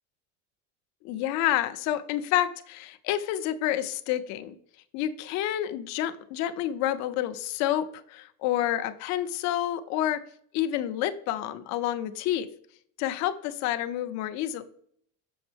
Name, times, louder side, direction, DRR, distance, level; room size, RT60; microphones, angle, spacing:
voice 1, 1.0-4.6 4.9-10.2 10.5-12.5 13.0-14.6, left 12 dB, 50° left, 10 dB, 0.6 m, -29 dB
7.1 x 5.2 x 3.4 m, 0.64 s
cardioid pair, 165°, 37 cm